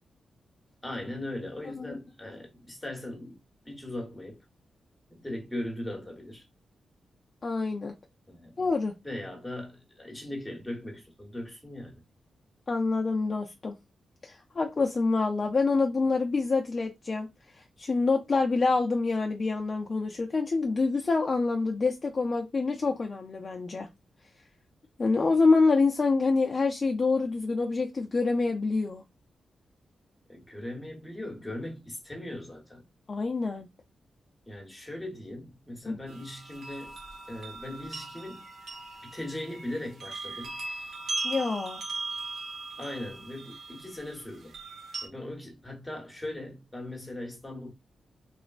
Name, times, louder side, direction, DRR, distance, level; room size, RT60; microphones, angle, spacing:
voice 1, 0.8-3.4 3.6-4.4 5.1-6.5 8.3-8.6 9.0-11.9 30.3-32.8 34.5-37.0 37.3-38.4 39.0-40.6 42.8-44.5 45.0-47.7, left 1 dB, 10° left, 0.9 m, -39 dB
voice 2, 7.4-8.0 8.6-8.9 12.7-13.8 14.2-17.3 17.8-23.9 25.0-29.0 33.1-33.7 35.8-36.0 41.2-41.8, left 3 dB, 35° left, 0.3 m, -26 dB
sound 1, 36.1-45.1, right 3 dB, 70° right, 1.0 m, -39 dB
3.0 x 2.1 x 2.3 m
wide cardioid pair, 120°, 0 cm